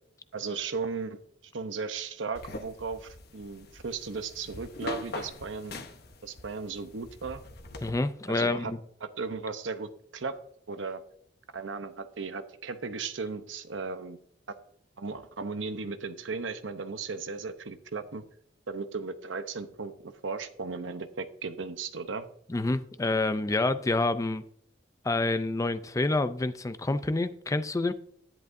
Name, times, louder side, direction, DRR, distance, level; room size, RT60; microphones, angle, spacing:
voice 1, 0.3-1.2 1.5-5.7 6.2-7.4 8.3-8.7 9.0-10.4 10.7-11.0 11.5-14.2 15.0-18.2 18.7-22.3, right 4 dB, 80° right, 10 dB, 0.8 m, -36 dB
sound 1, 2.4-7.9, left 2 dB, 60° left, 1.0 m, -42 dB
voice 2, 7.8-8.8 22.5-24.4 25.0-27.9, left 2 dB, 15° left, 12 dB, 0.4 m, -28 dB
11.0 x 10.5 x 2.6 m, 0.66 s
head